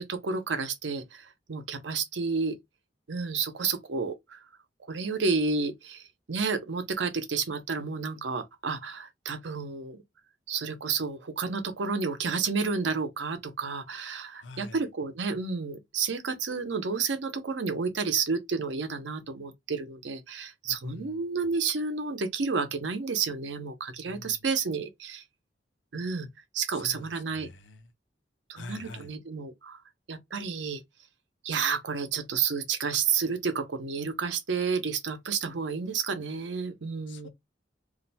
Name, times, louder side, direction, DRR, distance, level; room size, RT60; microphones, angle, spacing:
voice 1, 0.0-2.6 3.1-4.4 4.9-10.0 10.5-25.2 25.9-26.3 26.5-27.5 28.5-29.8 30.1-30.8 31.4-37.3, right 5 dB, 90° right, 0.7 m, -31 dB
voice 2, 14.4-14.8 20.7-21.2 24.0-24.4 26.7-27.0 27.4-27.8 28.6-29.1 37.1-37.3, left 2 dB, 90° left, 0.6 m, -45 dB
2.5 x 2.1 x 4.0 m
head